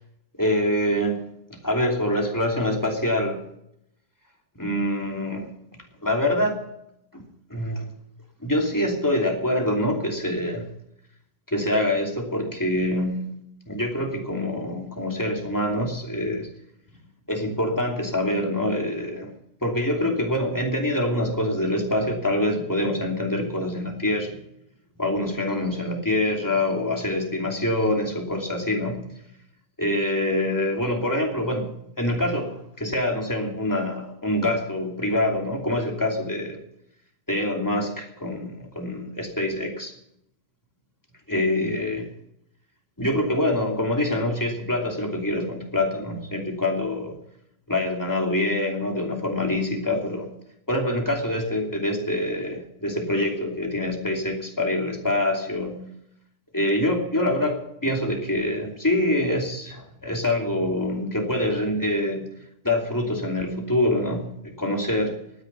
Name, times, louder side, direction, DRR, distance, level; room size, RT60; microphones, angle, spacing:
voice 1, 0.4-1.2 1.6-3.4 4.5-5.5 6.0-6.7 7.1-7.2 7.5-7.9 8.4-10.7 11.5-13.3 13.7-16.5 17.3-19.3 19.6-24.3 25.0-29.0 29.8-31.7 32.0-36.6 37.3-39.9 41.3-42.1 43.0-47.1 47.7-50.3 50.7-55.8 56.5-62.2 62.6-65.2, left 1 dB, 10° left, 1 dB, 2.8 m, -25 dB
19.0 x 10.5 x 5.6 m, 0.78 s
omnidirectional pair, 1.8 m